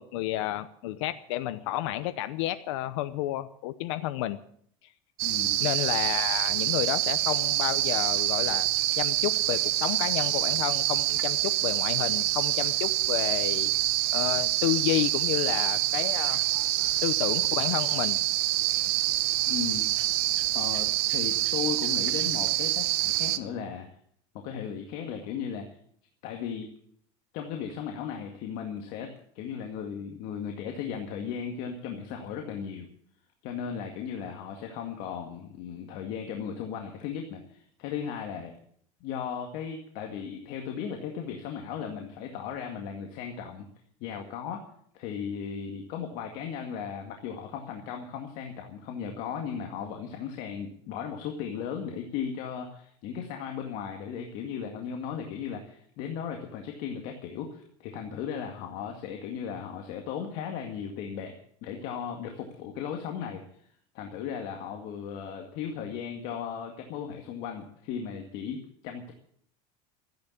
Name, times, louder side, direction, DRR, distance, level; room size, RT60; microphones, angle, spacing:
voice 1, 0.0-4.4 5.6-8.7 9.0-13.7 14.1-16.4 17.0-18.2, left 14 dB, 85° left, 12 dB, 0.8 m, -31 dB
voice 2, 5.2-5.7 19.5-19.9 20.5-23.9 24.3-25.8 26.2-26.7 27.3-32.9 33.4-38.5 39.0-43.7 44.0-44.6 44.9-61.3 61.6-63.7 63.9-69.1, left 7 dB, 60° left, 3 dB, 2.0 m, -36 dB
sound 1, 5.2-23.4, right 16 dB, 75° right, 1.0 m, -26 dB
14.0 x 10.5 x 8.5 m, 0.64 s
cardioid pair, 150°, 15 cm